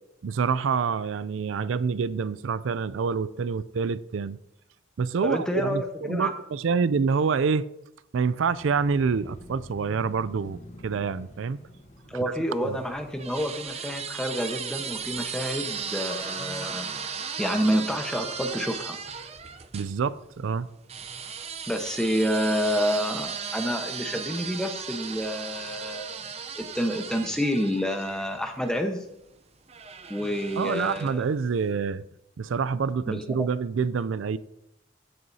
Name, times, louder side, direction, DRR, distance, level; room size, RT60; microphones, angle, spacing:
voice 1, 0.2-4.4 5.0-7.6 8.1-11.6 12.2-12.3 12.6-12.8 19.7-20.7 30.6-32.1 32.4-34.4, right 5 dB, 80° right, 0.4 m, -27 dB
voice 2, 5.2-6.3 12.1-17.1 17.4-19.0 21.7-26.2 26.5-29.0 30.1-31.3 33.1-33.5, equal, 5° left, 1.0 m, -28 dB
sound 1, 8.2-13.2, left 1 dB, 35° left, 1.2 m, -48 dB
sound 2, 12.5-19.9 20.9-28.8 29.7-31.3, right 6 dB, 30° right, 0.6 m, -36 dB
15.5 x 7.7 x 2.8 m
head